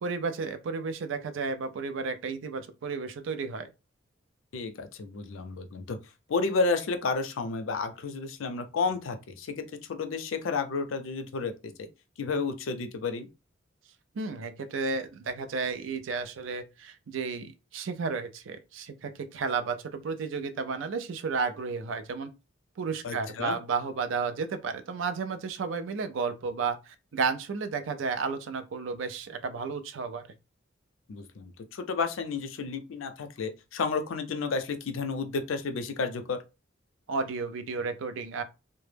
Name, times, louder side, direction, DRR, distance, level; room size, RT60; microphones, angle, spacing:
voice 1, 0.0-3.7 14.1-22.3 22.8-30.2 37.1-38.4, right 5 dB, 70° right, 0.4 m, -32 dB
voice 2, 4.5-6.0 6.3-11.7 12.2-13.3 23.0-23.6 31.1-36.4, left 4 dB, 90° left, 0.4 m, -31 dB
2.1 x 2.0 x 3.2 m
head